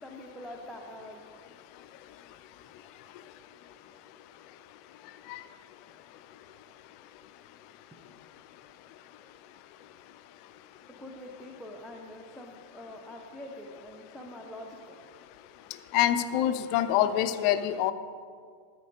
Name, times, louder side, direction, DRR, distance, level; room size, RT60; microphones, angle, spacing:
voice 1, 0.0-1.2 11.0-15.0, left 1 dB, ahead, -1 dB, 0.8 m, -44 dB
voice 2, 15.9-17.9, left 11 dB, 45° left, 11 dB, 0.5 m, -25 dB
13.5 x 4.6 x 5.2 m, 2.1 s
figure-of-eight pair, 90°, 0 cm